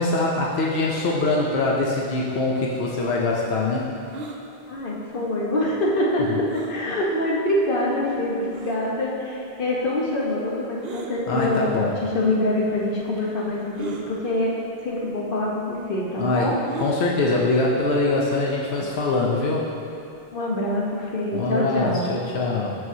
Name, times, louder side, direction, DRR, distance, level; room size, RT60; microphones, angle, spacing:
voice 1, 0.0-3.9 6.3-6.4 11.3-12.0 16.2-16.5 16.8-19.7 21.3-22.8, left 2 dB, 90° left, -3 dB, 1.0 m, -23 dB
sound 1, 4.1-4.4 6.5-6.8 7.6-7.7 8.5-8.8 10.8-11.1 12.2-12.3 13.7-14.1 15.0-15.1 15.4-15.5 16.7-17.0 18.7-19.0, right 3 dB, 75° right, 0.9 m, -36 dB
voice 2, 4.7-14.6 14.8-16.5 20.3-22.1, left 1 dB, 60° left, -4 dB, 1.2 m, -25 dB
12.0 x 4.6 x 2.7 m, 2.6 s
omnidirectional pair, 1.0 m